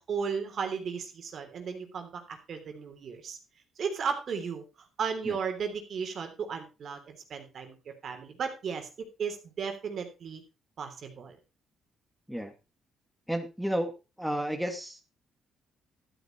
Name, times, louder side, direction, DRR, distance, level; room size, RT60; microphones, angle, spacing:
voice 1, 0.0-3.4 3.8-4.6 5.0-7.8 8.0-10.4 10.8-11.4, right 6 dB, 60° right, 6 dB, 3.5 m, -35 dB
voice 2, 13.3-13.9 14.2-15.0, right 1 dB, ahead, 4 dB, 2.2 m, -32 dB
13.0 x 9.3 x 4.5 m, 0.29 s
cardioid pair, 90°, 0 cm